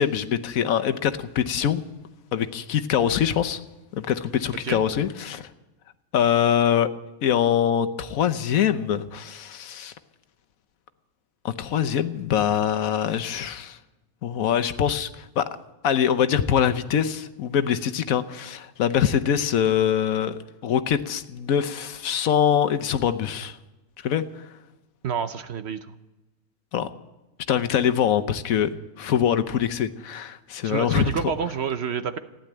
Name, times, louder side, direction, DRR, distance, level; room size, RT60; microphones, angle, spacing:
voice 1, 0.0-1.8 2.3-3.6 3.9-5.5 6.1-6.9 7.2-9.9 11.4-13.8 14.2-15.4 15.8-23.6 24.0-24.2 26.7-26.9 27.5-28.7 29.0-31.3, left 9 dB, 80° left, 11 dB, 1.2 m, -23 dB
voice 2, 25.0-25.8 30.6-32.2, right 7 dB, 55° right, 11 dB, 0.9 m, -28 dB
15.5 x 10.5 x 8.8 m, 1.1 s
omnidirectional pair, 1.4 m